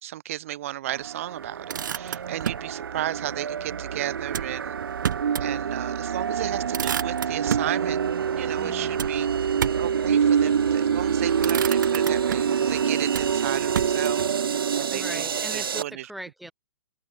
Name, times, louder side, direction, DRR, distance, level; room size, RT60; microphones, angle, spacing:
voice 1, 0.0-4.8 5.4-8.0 8.3-9.3 9.8-14.3 14.7-16.1, right 13 dB, 40° right, 2.9 m, -34 dB
sound 1, 0.9-15.8, right 7 dB, 90° right, 1.2 m, -26 dB
Motor vehicle (road), 1.4-2.7 4.3-5.5 5.9-6.0 6.4-7.8 9.0-10.0 10.8-11.1 11.4-12.6 13.1-14.3, right 9 dB, 60° right, 1.5 m, -31 dB
voice 2, 8.6-9.0 14.9-16.5, right 1 dB, ahead, 1.9 m, -40 dB
open air
hypercardioid pair, 170°, 11 cm